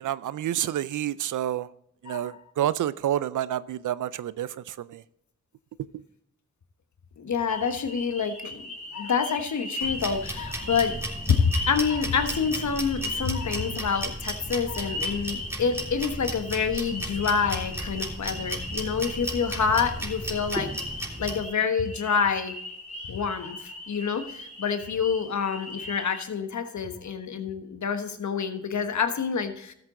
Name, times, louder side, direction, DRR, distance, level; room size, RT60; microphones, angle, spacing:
voice 1, 0.0-1.7 2.0-5.0 5.9-6.0, right 11 dB, 75° right, 0.5 m, -29 dB
voice 2, 2.1-2.4 7.2-11.0 11.3-20.7 21.2-22.6 23.0-29.7, left 6 dB, 70° left, 1.3 m, -27 dB
sound 1, 7.5-26.2, left 2 dB, 25° left, 3.0 m, -39 dB
sound 2, 9.8-21.4, right 1 dB, 10° right, 3.3 m, -35 dB
13.5 x 8.0 x 3.8 m
supercardioid pair, 40°, 31 cm